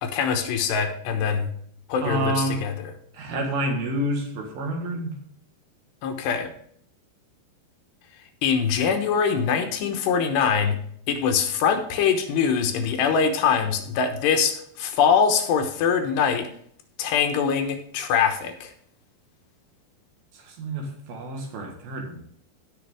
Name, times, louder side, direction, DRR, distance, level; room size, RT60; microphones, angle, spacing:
voice 1, 0.0-1.5 1.9-2.9 6.0-6.5 8.4-10.8 11.1-16.5 17.0-18.7, left 6 dB, 75° left, 6 dB, 3.1 m, -23 dB
voice 2, 2.0-2.6 3.1-5.1 20.5-22.2, right 1 dB, 65° right, 2 dB, 3.2 m, -28 dB
16.5 x 5.8 x 3.5 m, 0.65 s
omnidirectional pair, 5.1 m